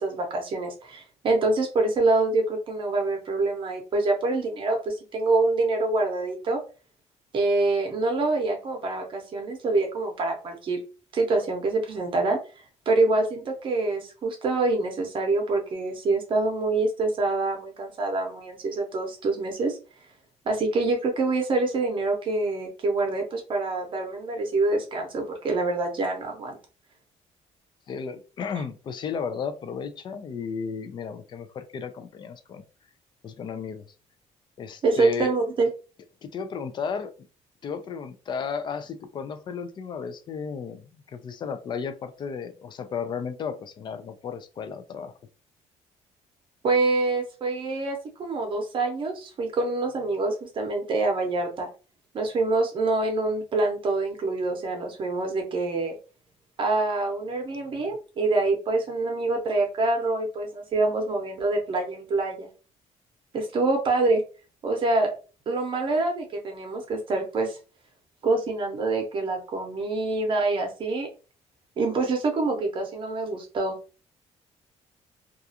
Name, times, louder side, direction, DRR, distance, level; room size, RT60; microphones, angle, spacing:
voice 1, 0.0-6.6 7.3-10.8 11.1-12.4 12.9-19.8 20.5-26.6 34.8-35.7 46.6-51.7 52.1-56.0 56.6-62.5 63.3-64.2 64.6-65.1 65.5-67.6 68.2-71.1 71.8-73.8, right 3 dB, 45° right, 2 dB, 0.7 m, -26 dB
voice 2, 27.9-32.6 33.2-33.9 34.6-35.3 36.2-37.1 37.6-45.1 57.7-57.8, left 6 dB, 40° left, 10 dB, 0.3 m, -34 dB
2.4 x 2.3 x 2.7 m, 0.34 s
cardioid pair, 140°, 12 cm